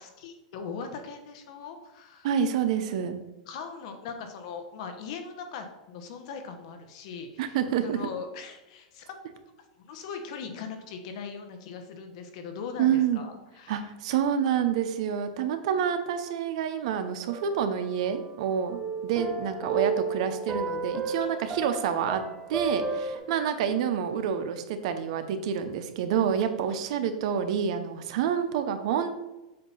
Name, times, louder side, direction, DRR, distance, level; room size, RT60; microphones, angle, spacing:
voice 1, 0.0-2.3 3.5-7.6 7.8-9.2 9.7-13.8 22.7-22.8 26.7-26.9, left 5 dB, 55° left, 6 dB, 1.1 m, -40 dB
voice 2, 2.2-3.2 7.4-8.0 12.8-13.2 13.7-22.2 22.5-29.1, right 8 dB, 60° right, 8 dB, 0.7 m, -28 dB
sound 1, 17.3-18.4 18.7-23.2, right 4 dB, 5° right, 0.9 m, -32 dB
7.7 x 2.7 x 5.6 m, 1.0 s
supercardioid pair, 150°, 4 cm